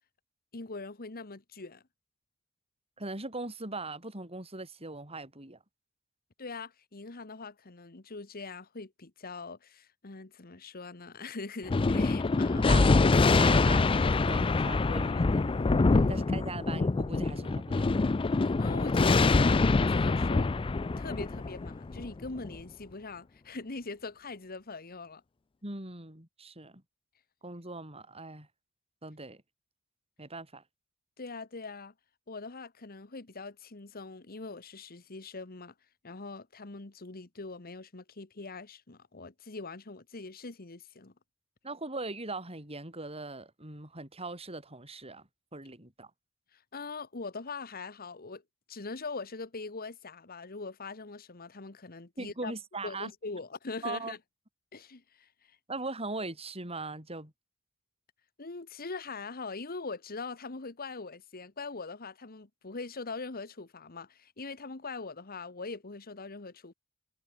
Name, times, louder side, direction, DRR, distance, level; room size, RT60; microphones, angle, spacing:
voice 1, 0.5-1.8 6.4-12.9 15.9-16.1 18.3-20.5 21.0-25.2 31.2-31.9 32.3-35.7 36.0-41.1 46.5-48.4 48.7-52.5 52.8-54.2 54.7-55.6 58.4-66.7, left 3 dB, 45° left, 1.4 m, -42 dB
voice 2, 3.0-5.6 12.5-13.0 13.3-15.4 16.1-17.9 25.6-26.8 27.4-28.5 29.0-29.4 30.2-30.6 41.6-46.1 52.2-53.1 53.8-54.1 55.7-57.3, right 3 dB, 30° right, 6.8 m, -40 dB
Thunder, 11.7-22.5, left 3 dB, 25° left, 0.4 m, -25 dB
head